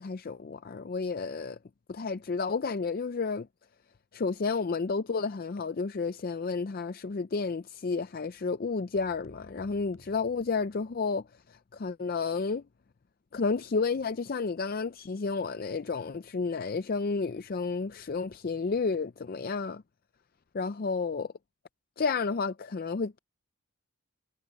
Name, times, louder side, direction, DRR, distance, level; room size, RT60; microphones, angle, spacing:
voice 1, 0.0-1.6 1.9-3.5 4.1-12.6 13.3-19.8 20.5-21.3 22.0-23.2, left 4 dB, 40° left, 0.4 m, -31 dB
sound 1, 8.9-11.2, equal, 80° left, 7.5 m, -57 dB
head